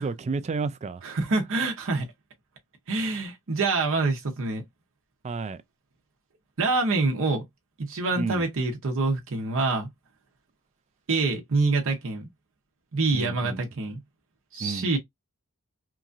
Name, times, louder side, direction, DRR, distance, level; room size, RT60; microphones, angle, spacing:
voice 1, 0.0-1.0 5.2-5.6 8.2-8.4 13.1-13.6 14.6-14.9, right 4 dB, 30° right, 0.3 m, -31 dB
voice 2, 1.0-2.1 2.9-4.6 6.6-7.4 7.8-9.9 11.1-12.2 12.9-14.0 14.5-15.0, right 3 dB, 60° right, 0.7 m, -26 dB
2.9 x 2.5 x 2.4 m
head